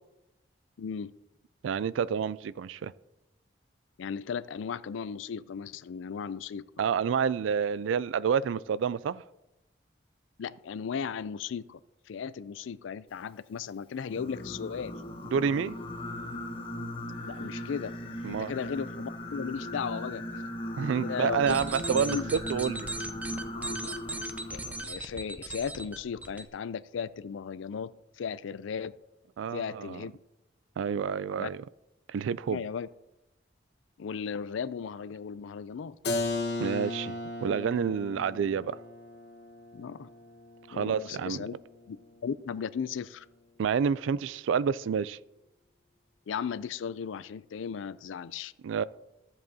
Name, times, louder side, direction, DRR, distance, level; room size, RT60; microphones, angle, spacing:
voice 1, 0.8-1.1 4.0-6.7 10.4-11.8 12.1-15.0 17.2-17.9 18.3-20.2 21.0-21.6 22.1-22.3 24.5-27.9 28.2-28.9 29.5-30.1 31.4-31.5 32.5-32.9 34.0-36.0 39.7-40.1 40.7-41.5 41.9-42.0 42.2-43.3 46.3-48.5, left 6 dB, 85° left, 0.4 m, -36 dB
voice 2, 1.6-2.9 6.8-9.2 15.3-15.8 18.2-18.5 20.8-22.9 29.4-30.1 30.8-31.6 32.1-32.6 36.6-38.8 40.7-41.4 43.6-45.2 48.6-48.8, right 7 dB, 85° right, 0.3 m, -29 dB
Singing, 14.1-24.8, left 1 dB, 30° left, 1.1 m, -38 dB
sound 1, 21.3-26.4, right 2 dB, 10° right, 0.4 m, -38 dB
Keyboard (musical), 36.0-41.6, left 2 dB, 55° left, 1.3 m, -36 dB
14.0 x 7.8 x 2.8 m
head